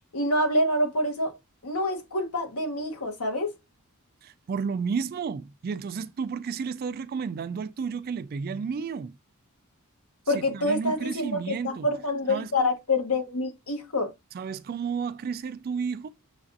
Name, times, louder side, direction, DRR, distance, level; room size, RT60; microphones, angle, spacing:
voice 1, 0.1-1.3 1.6-3.5 10.3-14.1, left 1 dB, 75° left, 1.2 m, -26 dB
voice 2, 4.2-9.2 10.3-11.9 12.3-12.7 14.3-16.1, right 6 dB, 40° right, 0.3 m, -32 dB
6.9 x 2.4 x 2.6 m
head